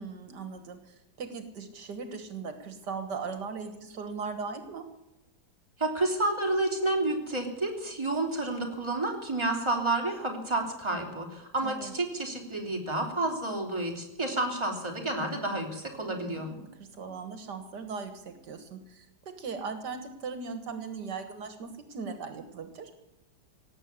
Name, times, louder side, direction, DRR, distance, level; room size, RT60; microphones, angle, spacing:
voice 1, 0.0-4.9 11.6-11.9 16.1-22.9, right 5 dB, 75° right, 8 dB, 2.0 m, -39 dB
voice 2, 5.8-16.5, right 2 dB, 15° right, 1 dB, 3.3 m, -30 dB
17.5 x 8.4 x 9.4 m, 0.91 s
omnidirectional pair, 1.8 m